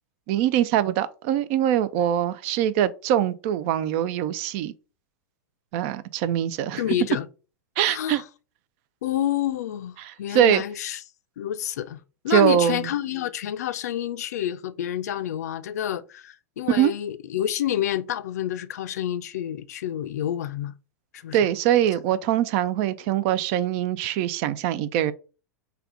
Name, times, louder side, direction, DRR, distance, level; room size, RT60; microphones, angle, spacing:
voice 1, 0.3-4.7 5.7-6.8 7.8-8.2 10.0-10.6 12.3-12.9 16.7-16.9 21.3-25.1, right 11 dB, 50° right, 0.4 m, -23 dB
voice 2, 6.8-7.3 7.8-8.2 9.0-11.0 11.4-20.7 21.1-21.4, left 11 dB, 70° left, 0.4 m, -28 dB
3.3 x 2.3 x 3.7 m
hypercardioid pair, 95°, 9 cm